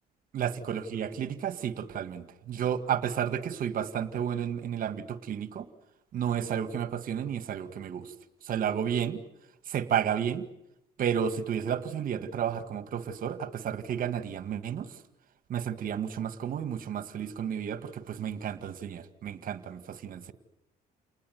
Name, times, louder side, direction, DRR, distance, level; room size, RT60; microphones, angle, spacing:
voice 1, 0.3-5.7 6.1-8.1 8.4-9.2 9.7-10.5 11.0-15.0 15.5-20.3, right 8 dB, 55° right, 13 dB, 2.1 m, -32 dB
29.5 x 20.0 x 9.6 m, 0.83 s
cardioid pair, 110°, 17 cm